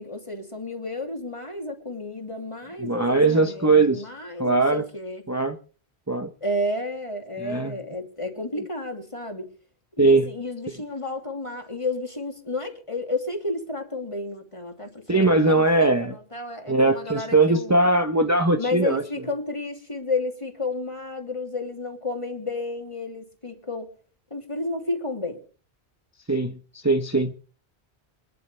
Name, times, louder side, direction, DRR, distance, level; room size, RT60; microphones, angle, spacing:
voice 1, 0.0-5.2 6.4-9.5 10.0-17.8 18.6-23.9 24.3-25.4, left 2 dB, 30° left, 3 dB, 2.9 m, -31 dB
voice 2, 2.8-4.0 4.4-4.8 5.3-5.6 6.1-6.3 7.4-7.7 10.0-10.3 15.1-16.2 16.7-19.0 26.3-27.3, right 2 dB, 15° right, 6 dB, 0.9 m, -20 dB
26.0 x 11.0 x 3.4 m, 0.38 s
omnidirectional pair, 1.1 m